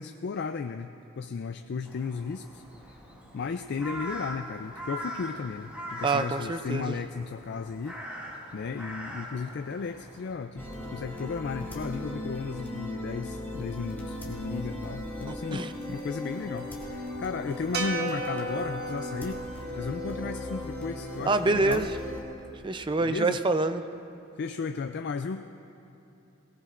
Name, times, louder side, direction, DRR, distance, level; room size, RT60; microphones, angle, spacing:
voice 1, 0.0-3.0 3.3-8.0 8.5-10.7 10.9-19.4 19.8-21.9 23.0-23.4 24.4-25.4, left 5 dB, 50° left, 7 dB, 0.4 m, -35 dB
Crow, 1.9-10.3, equal, 5° right, 2.1 m, -41 dB
voice 2, 6.0-7.0 15.3-15.7 21.2-21.9 22.6-23.8, right 3 dB, 20° right, 9 dB, 0.5 m, -26 dB
sound 1, 10.6-22.2, left 1 dB, 10° left, 2.0 m, -38 dB
sound 2, 17.7-22.1, right 1 dB, 50° right, 1.0 m, -36 dB
22.5 x 18.0 x 2.5 m, 2.9 s
head